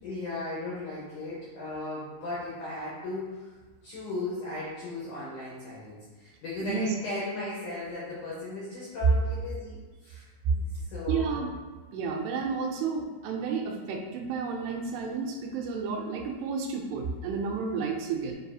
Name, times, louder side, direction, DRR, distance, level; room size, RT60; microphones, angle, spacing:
voice 1, 0.0-3.5 3.8-9.8 10.0-10.3 10.5-11.4, left 2 dB, 70° left, -7 dB, 1.8 m, -36 dB
voice 2, 6.6-7.0 10.8-11.5 11.9-18.4, right 5 dB, 90° right, 1 dB, 2.7 m, -31 dB
7.3 x 2.7 x 2.3 m, 1.3 s
omnidirectional pair, 4.6 m